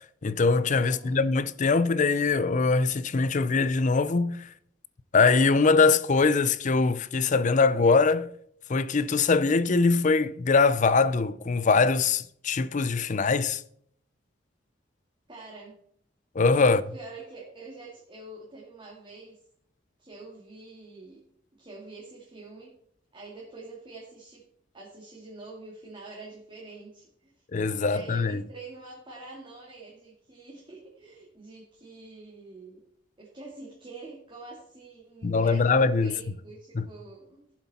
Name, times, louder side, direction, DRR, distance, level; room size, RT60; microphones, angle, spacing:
voice 1, 0.2-4.5 5.1-8.3 8.7-13.6 16.4-16.8 27.5-28.4 35.2-36.1 36.7-36.9, left 4 dB, 40° left, 0.5 m, -22 dB
voice 2, 0.8-1.2 15.3-15.8 16.6-19.4 20.0-21.2 21.6-22.8 23.1-24.5 24.7-27.3 27.8-32.8 33.2-37.5, right 3 dB, 25° right, 2.3 m, -46 dB
14.5 x 7.4 x 4.2 m
head